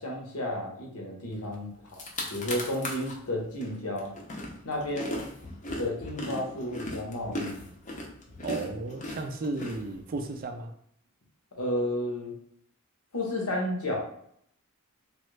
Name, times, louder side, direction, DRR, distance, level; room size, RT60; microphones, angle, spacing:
voice 1, 0.0-1.7 2.3-4.1 4.6-5.2 5.8-7.6 11.6-12.3 13.1-14.0, left 1 dB, 75° left, -1 dB, 0.9 m, -32 dB
sound 1, 1.5-1.6 1.9-3.1 3.6-10.3, left 1 dB, 35° left, 0.6 m, -37 dB
voice 2, 8.4-10.7, right 3 dB, 40° right, 6 dB, 0.4 m, -34 dB
3.1 x 2.3 x 3.1 m, 0.68 s
head